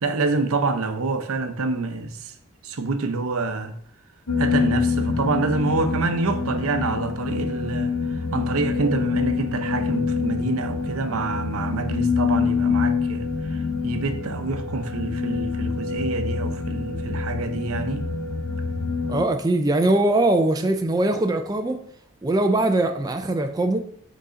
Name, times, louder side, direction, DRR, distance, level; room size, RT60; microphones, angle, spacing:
voice 1, 0.0-2.3 2.6-3.8 4.4-18.1, right 3 dB, 85° right, 0.7 m, -27 dB
sound 1, 4.3-19.3, left 5 dB, 85° left, 0.8 m, -26 dB
voice 2, 19.1-21.8 22.2-23.8, right 2 dB, 15° right, 0.4 m, -21 dB
6.5 x 4.1 x 3.7 m
head